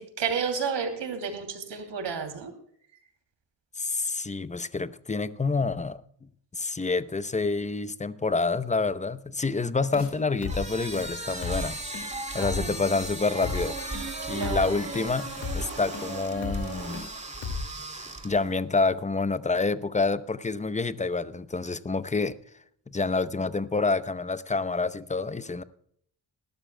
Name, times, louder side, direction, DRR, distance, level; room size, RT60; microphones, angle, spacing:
voice 1, 0.0-2.5 12.3-12.8 14.2-14.7 17.7-17.8, right 6 dB, 80° right, 2.9 m, -32 dB
voice 2, 3.8-11.8 12.3-13.8 14.3-17.1 17.9-22.4 22.9-25.6, left 3 dB, 15° left, 0.8 m, -28 dB
sound 1, 9.9-10.1 10.4-10.6 10.9-11.1 11.4-11.6 11.9-12.1 12.4-12.6 12.9-13.1 13.4-13.6 13.9-14.1 14.4-14.6 14.9-15.1 15.4-15.6 15.9-16.1 16.4-16.6 16.9-17.1 17.4-17.6, left 4 dB, 90° left, 2.5 m, -33 dB
sound 2, 10.4-18.6, right 2 dB, 15° right, 2.2 m, -38 dB
sound 3, 13.4-17.5, right 4 dB, 35° right, 2.8 m, -40 dB
20.5 x 12.5 x 2.2 m
cardioid pair, 70°, 42 cm